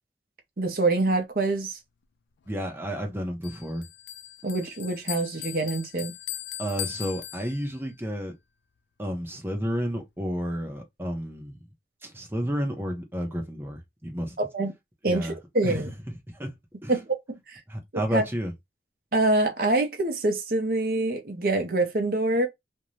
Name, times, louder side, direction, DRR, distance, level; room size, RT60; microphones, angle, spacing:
voice 1, 0.6-1.8 4.4-6.1 14.5-14.7 15.0-15.9 16.9-17.1 17.5-17.6 18.1-18.2 19.1-22.5, right 2 dB, 55° right, 0.7 m, -25 dB
voice 2, 2.5-3.9 6.6-8.3 9.0-11.7 12.0-14.4 15.0-15.3 15.6-16.5 16.8-16.9 17.7-18.5, equal, 10° right, 0.7 m, -31 dB
Bell, 3.4-7.9, left 13 dB, 75° left, 0.3 m, -39 dB
2.6 x 2.2 x 3.0 m
head